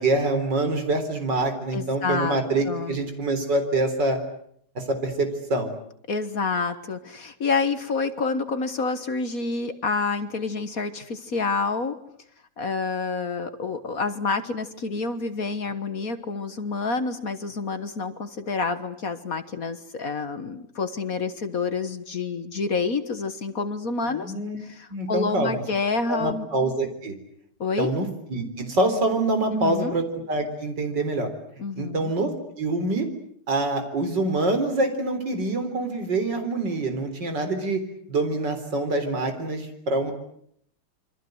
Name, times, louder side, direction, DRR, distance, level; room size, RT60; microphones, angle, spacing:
voice 1, 0.0-4.2 4.8-5.7 24.1-24.6 24.9-25.6 26.1-27.1 27.8-31.3 31.8-33.1 33.5-37.8 38.1-40.1, right 2 dB, 50° right, 7 dB, 4.5 m, -25 dB
voice 2, 1.7-2.4 2.6-3.0 6.1-12.0 12.6-24.3 24.6-26.5 27.6-27.9 29.5-30.0 31.6-32.1, left 4 dB, 45° left, 11 dB, 1.5 m, -28 dB
27.5 x 24.5 x 7.9 m, 0.68 s
omnidirectional pair, 2.4 m